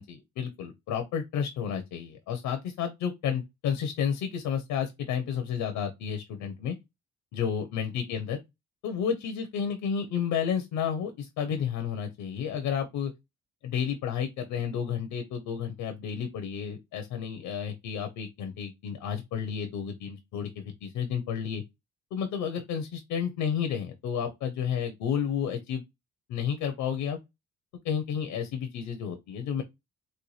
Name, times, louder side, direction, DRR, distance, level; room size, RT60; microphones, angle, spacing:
voice 1, 0.0-6.7 7.3-8.4 8.8-13.1 13.6-21.6 22.1-25.8 26.3-27.2 27.8-29.6, left 7 dB, 85° left, 0.7 m, -31 dB
4.1 x 2.2 x 3.1 m
cardioid pair, 90°, 30 cm